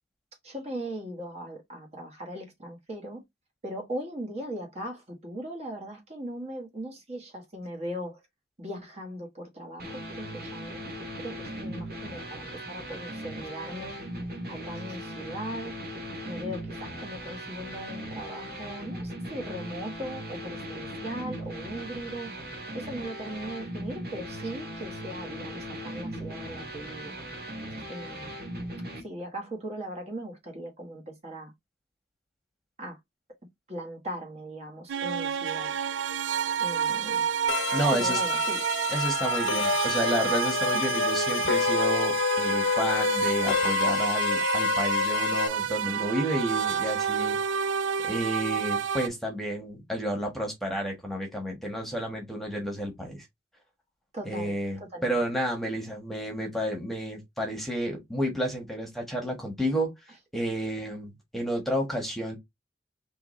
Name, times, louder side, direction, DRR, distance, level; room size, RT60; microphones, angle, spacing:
voice 1, 0.4-3.2 3.6-8.2 8.6-10.9 11.2-14.0 14.5-15.7 16.3-22.3 22.7-27.1 27.9-28.4 29.0-31.5 32.8-33.0 33.7-35.8 36.6-37.3 37.9-38.6 40.7-40.8 54.1-55.2, right 1 dB, 35° right, 1.4 m, -39 dB
sound 1, 9.8-29.0, equal, 55° right, 1.9 m, -38 dB
sound 2, 34.9-49.1, right 8 dB, 85° right, 0.4 m, -29 dB
sound 3, 37.5-45.5, left 7 dB, 80° left, 0.6 m, -28 dB
voice 2, 37.7-38.2 38.9-47.6 48.0-53.2 54.2-59.9 60.3-62.4, equal, ahead, 1.3 m, -31 dB
4.6 x 3.1 x 3.2 m
head